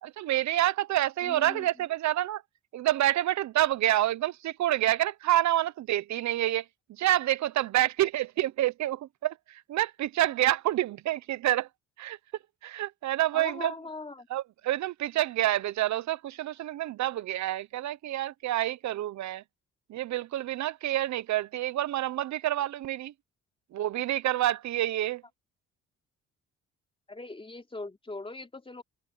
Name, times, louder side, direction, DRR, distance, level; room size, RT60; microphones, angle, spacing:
voice 1, 0.0-2.4 2.7-6.6 6.9-11.7 12.0-12.2 12.6-13.7 14.3-19.4 19.9-23.1 23.7-25.2, right 14 dB, 65° right, 0.7 m, -28 dB
voice 2, 1.2-1.7 13.3-14.3 27.1-28.8, left 3 dB, 20° left, 3.8 m, -40 dB
cardioid pair, 90°, 30 cm